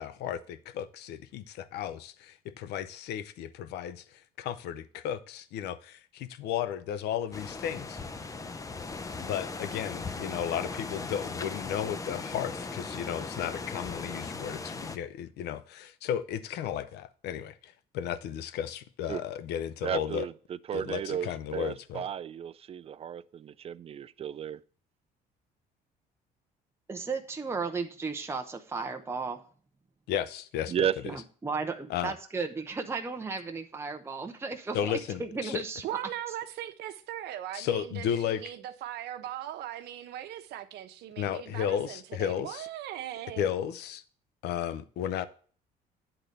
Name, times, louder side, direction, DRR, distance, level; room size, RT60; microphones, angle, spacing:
voice 1, 0.0-8.0 9.2-20.3 20.7-22.1 30.1-30.9 31.9-32.1 34.7-35.6 37.5-38.4 41.2-42.7 43.4-44.0 44.4-45.3, left 9 dB, 80° left, 0.7 m, -34 dB
sound 1, 7.3-15.0, left 3 dB, 20° left, 0.6 m, -38 dB
voice 2, 19.8-20.3 20.7-24.6 30.7-31.2, right 9 dB, 35° right, 0.4 m, -33 dB
voice 3, 26.9-29.4 31.1-31.7 32.0-35.8, right 4 dB, 15° right, 0.8 m, -35 dB
voice 4, 35.8-43.5, right 12 dB, 75° right, 0.9 m, -39 dB
9.0 x 3.9 x 6.6 m
cardioid pair, 110°, 17 cm